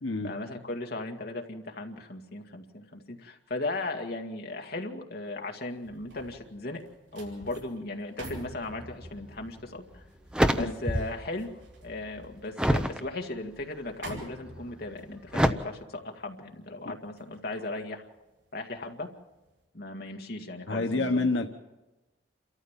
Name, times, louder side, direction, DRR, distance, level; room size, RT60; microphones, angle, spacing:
voice 1, 0.2-6.8 7.1-10.0 10.5-11.5 11.8-18.0 18.5-19.1 19.7-21.3, left 2 dB, 55° left, 3 dB, 2.0 m, -37 dB
sound 1, 5.6-18.9 19.3-19.6, right 1 dB, 85° right, 7.3 m, -49 dB
sound 2, 9.4-9.5 10.0-11.3 11.6-13.0 13.6-14.0 15.3-15.5, equal, 5° right, 0.8 m, -27 dB
voice 2, 20.7-21.6, left 3 dB, 85° left, 4 dB, 1.2 m, -28 dB
28.5 x 13.5 x 7.4 m, 1.1 s
head